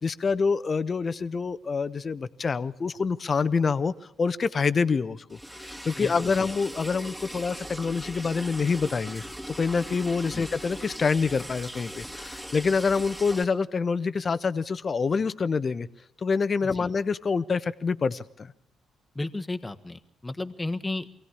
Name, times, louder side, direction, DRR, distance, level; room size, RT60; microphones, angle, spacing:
voice 1, 0.0-15.9 16.2-18.5, left 5 dB, 45° left, 14 dB, 1.0 m, -26 dB
Liquid, 5.3-13.4, equal, 10° right, 2.8 m, -40 dB
voice 2, 6.0-6.5 10.3-10.5 16.6-16.9 19.1-21.1, left 2 dB, 20° left, 8 dB, 1.5 m, -34 dB
23.5 x 17.0 x 8.4 m, 0.80 s
supercardioid pair, 60°, 0 cm